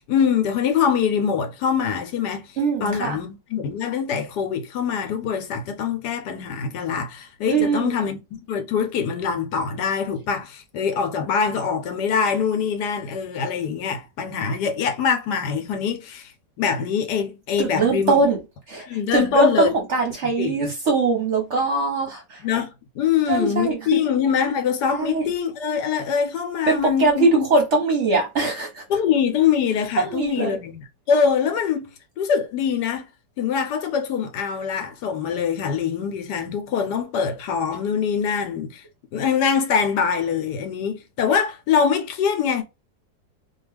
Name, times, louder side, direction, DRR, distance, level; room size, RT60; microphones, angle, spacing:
voice 1, 0.0-2.5 2.8-16.3 16.6-18.2 18.8-19.7 20.4-20.7 22.4-27.5 28.9-30.8 31.1-33.1 33.4-38.8 39.1-42.6, left 7 dB, 75° left, 1.2 m, -24 dB
voice 2, 2.6-3.2 7.5-7.9 17.6-18.4 18.7-18.9 19.1-22.4 23.3-24.0 25.0-25.2 26.7-28.8 30.0-30.6, right 3 dB, 55° right, 0.9 m, -21 dB
2.8 x 2.3 x 3.2 m
omnidirectional pair, 1.9 m